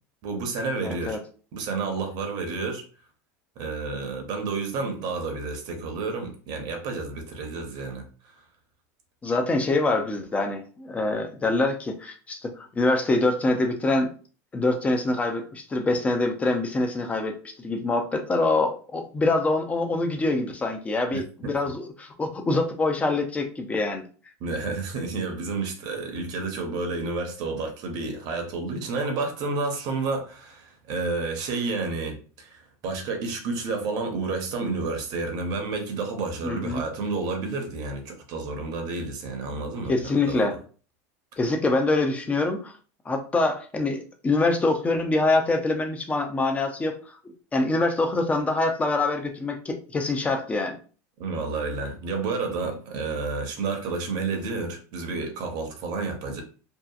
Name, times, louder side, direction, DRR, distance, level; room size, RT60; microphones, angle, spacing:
voice 1, 0.2-1.2 1.5-2.8 3.6-8.1 21.1-21.5 24.4-40.5 51.2-56.4, right 3 dB, 55° right, 0.8 m, -30 dB
voice 2, 0.8-1.2 9.2-14.1 14.5-24.1 36.4-36.8 39.9-40.6 41.4-42.7 43.1-47.1 47.5-50.8, left 2 dB, 15° left, 0.5 m, -25 dB
2.7 x 2.4 x 2.3 m
supercardioid pair, 120°, 8 cm